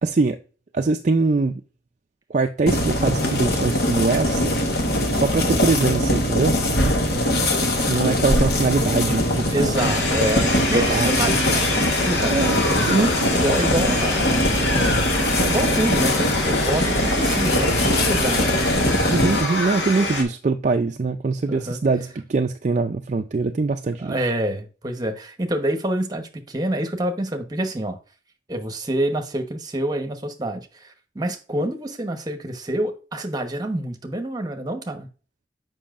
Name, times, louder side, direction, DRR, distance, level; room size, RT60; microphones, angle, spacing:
voice 1, 0.0-0.4 0.7-1.6 2.3-4.5 5.1-6.6 7.9-9.7 10.7-11.1 12.3-13.1 19.1-24.2, right 3 dB, 40° right, 0.4 m, -22 dB
sound 1, 2.7-19.4, left 1 dB, 60° left, 1.3 m, -22 dB
voice 2, 4.8-5.3 7.1-7.5 9.5-12.5 12.8-13.0 13.3-18.7 21.5-21.8 24.0-28.0 28.5-35.1, right 1 dB, 20° right, 1.0 m, -27 dB
sound 2, 9.8-20.2, left 2 dB, 75° left, 1.6 m, -25 dB
7.1 x 5.5 x 2.5 m
head